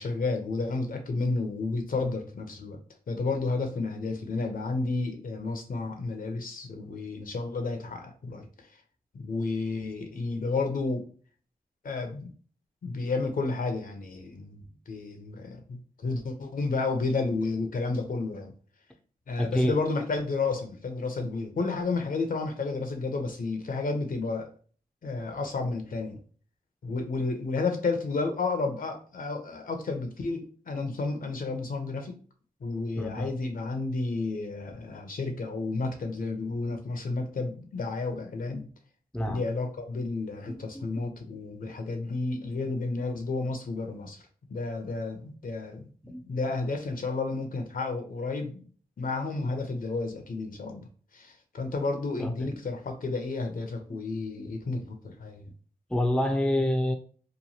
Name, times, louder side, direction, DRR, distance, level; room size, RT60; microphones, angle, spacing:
voice 1, 0.0-2.8 3.1-8.5 9.1-11.0 11.8-12.3 12.8-18.5 19.3-24.5 25.0-26.2 26.8-32.2 32.6-38.7 39.3-44.2 44.5-48.6 49.0-50.8 51.1-55.5, left 3 dB, 60° left, 5 dB, 0.6 m, -31 dB
voice 2, 19.4-19.8 33.0-33.3 39.1-39.4 40.7-41.0 46.0-46.2 52.2-52.6 54.4-54.5 55.9-57.0, left 1 dB, 5° left, 4 dB, 0.5 m, -28 dB
3.0 x 2.2 x 2.7 m, 0.42 s
cardioid pair, 55°, 16 cm